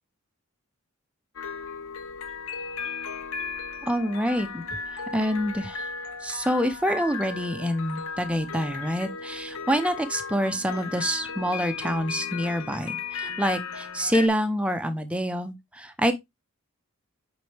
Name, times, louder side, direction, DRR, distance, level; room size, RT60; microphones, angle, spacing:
sound 1, 1.4-14.3, left 5 dB, 75° left, 1.2 m, -36 dB
voice 1, 3.8-4.6 5.1-5.9 6.2-16.1, equal, 5° right, 0.8 m, -27 dB
8.3 x 4.5 x 3.4 m
head